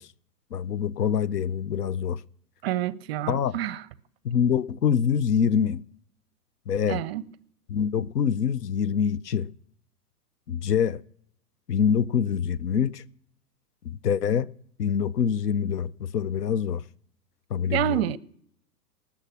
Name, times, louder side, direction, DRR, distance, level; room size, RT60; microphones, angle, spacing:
voice 1, 0.5-2.2 3.3-3.5 4.2-5.8 6.7-7.0 7.7-9.5 10.5-11.0 11.7-13.0 13.9-14.5 14.8-16.8 17.5-18.0, left 7 dB, 75° left, 0.6 m, -25 dB
voice 2, 2.6-3.9 6.9-7.2 17.7-18.2, right 13 dB, 40° right, 0.5 m, -28 dB
19.0 x 7.3 x 6.0 m
figure-of-eight pair, 105°, 48 cm